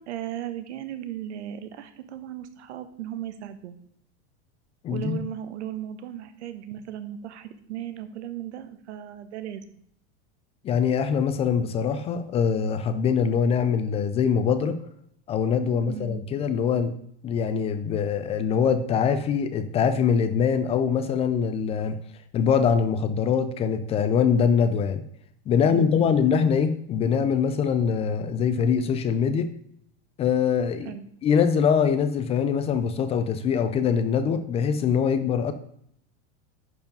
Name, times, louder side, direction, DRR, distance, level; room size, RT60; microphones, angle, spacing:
voice 1, 0.0-3.7 4.9-9.6 15.8-16.2 25.6-26.2 30.8-31.0, right 11 dB, 90° right, 11 dB, 1.2 m, -36 dB
voice 2, 4.8-5.2 10.6-14.8 15.3-16.9 17.2-22.0 22.3-25.0 25.5-29.5 30.2-30.9 31.2-35.5, left 7 dB, 20° left, 11 dB, 0.4 m, -23 dB
10.5 x 4.8 x 5.3 m, 0.68 s
supercardioid pair, 150°, 33 cm